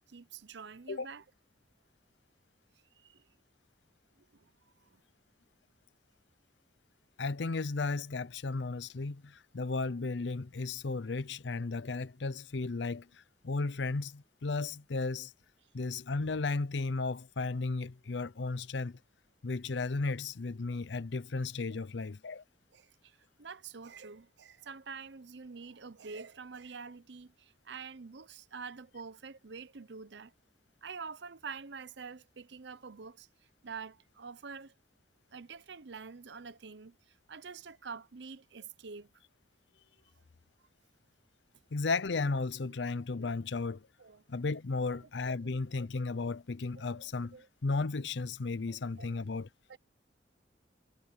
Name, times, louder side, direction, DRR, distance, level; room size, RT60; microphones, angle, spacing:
voice 1, 0.1-1.2 3.0-3.2 4.2-4.5 4.8-5.0 21.7-21.8 22.7-30.3 30.8-33.3 33.6-34.7 35.3-39.1 42.7-42.8 44.0-44.2 44.8-45.5 46.7-47.5 48.7-49.1 49.7-49.8, right 5 dB, 70° right, 0.7 m, -47 dB
voice 2, 7.2-15.3 15.7-19.0 19.4-22.4 41.7-43.9 44.3-47.4 47.6-49.5, left 3 dB, 75° left, 0.6 m, -34 dB
head